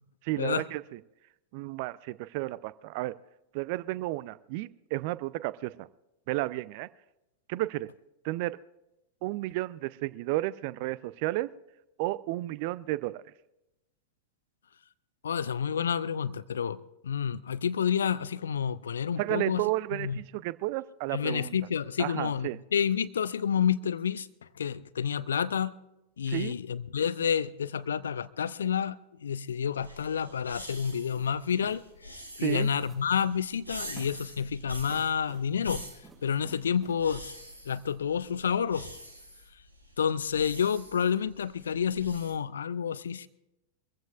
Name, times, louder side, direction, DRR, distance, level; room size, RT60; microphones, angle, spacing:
voice 1, 0.2-1.0 1.5-3.1 3.5-5.9 6.3-6.9 7.5-7.9 8.2-8.6 9.2-11.5 12.0-13.2 19.2-21.6 22.0-22.6 26.3-26.5 32.4-32.7, right 18 dB, 45° right, 0.4 m, -32 dB
voice 2, 15.2-19.6 19.9-20.2 21.1-24.3 24.6-25.7 26.2-31.8 32.4-35.8 36.2-37.3 37.7-38.9 40.0-43.3, left 7 dB, 65° left, 0.6 m, -29 dB
sound 1, 29.8-42.3, equal, 85° right, 2.3 m, -46 dB
sound 2, 31.6-31.9 32.8-33.2 33.9-34.4 34.9-37.1, right 4 dB, 25° right, 5.3 m, -52 dB
24.5 x 15.0 x 2.5 m
figure-of-eight pair, 90°, 0 cm